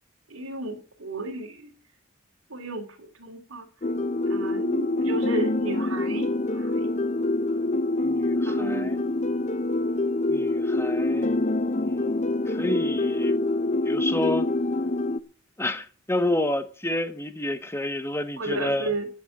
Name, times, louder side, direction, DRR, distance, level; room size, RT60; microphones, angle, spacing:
voice 1, 0.3-1.7 2.5-3.7 4.3-6.9 8.4-9.1 18.4-19.1, right 2 dB, 85° right, 3.1 m, -33 dB
sound 1, 3.8-15.2, left 2 dB, 35° left, 0.7 m, -25 dB
voice 2, 8.0-9.0 10.3-11.4 11.8-13.4 13.8-14.5 15.6-18.9, left 1 dB, 10° left, 1.1 m, -29 dB
11.5 x 7.1 x 8.5 m
head